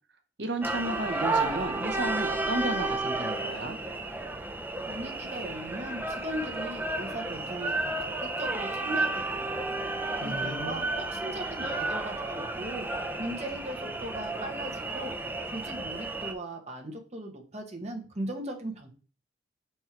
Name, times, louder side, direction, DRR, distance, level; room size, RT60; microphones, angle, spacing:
voice 1, 0.4-3.8 10.2-10.8, right 2 dB, 65° right, 6 dB, 1.0 m, -33 dB
sound 1, 0.6-16.3, right 2 dB, 10° right, 0.5 m, -32 dB
voice 2, 4.9-9.7 10.2-15.1 15.5-18.9, right 1 dB, 35° right, 2 dB, 1.2 m, -38 dB
5.4 x 4.5 x 4.5 m, 0.36 s
head